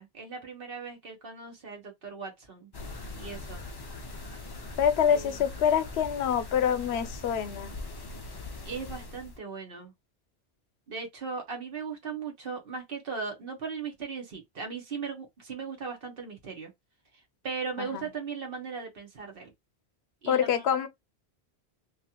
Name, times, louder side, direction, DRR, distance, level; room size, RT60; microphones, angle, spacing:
voice 1, 0.0-2.7 3.1-3.6 5.1-5.4 8.6-9.9 10.9-16.7 17.4-19.5 20.2-20.7, right 5 dB, 60° right, 1.2 m, -38 dB
sound 1, 2.7-9.4, left 2 dB, 35° left, 0.4 m, -41 dB
voice 2, 4.8-7.7 17.8-18.0 20.3-20.9, left 8 dB, 80° left, 0.8 m, -26 dB
3.0 x 2.4 x 2.8 m
omnidirectional pair, 1.1 m